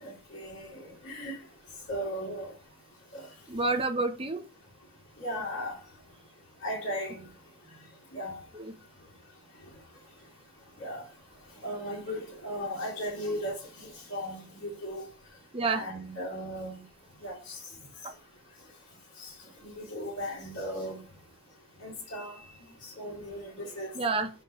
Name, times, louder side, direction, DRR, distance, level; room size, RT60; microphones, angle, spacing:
voice 1, 0.0-1.4 1.9-2.5 3.1-3.3 5.2-5.8 6.6-7.2 8.1-8.4 10.8-11.0 11.6-15.0 15.7-16.8 17.2-17.6 19.2-19.3 19.6-21.0 21.8-22.3 23.0-23.9, equal, 60° left, 2.6 m, -36 dB
voice 2, 3.2-4.4 8.5-8.7 15.5-15.8 18.0-18.1 23.9-24.3, right 3 dB, 25° right, 0.8 m, -29 dB
6.8 x 5.7 x 3.1 m
head